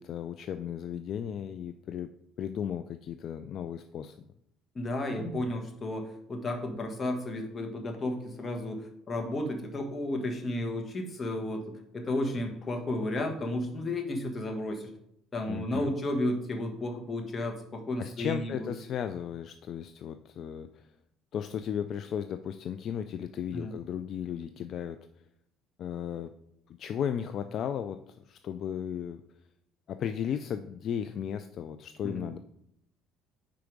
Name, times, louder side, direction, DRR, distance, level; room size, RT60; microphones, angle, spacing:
voice 1, 0.0-2.1 2.4-4.1 15.5-15.9 18.0-20.8 21.3-25.1 25.8-26.3 26.8-29.2 29.9-32.4, left 9 dB, 55° left, 9 dB, 0.3 m, -35 dB
voice 2, 4.7-11.6 11.9-14.9 15.3-18.7 23.5-23.7 32.0-32.3, left 1 dB, 30° left, 3 dB, 1.3 m, -33 dB
4.8 x 4.6 x 5.1 m, 0.74 s
cardioid pair, 105°, 0 cm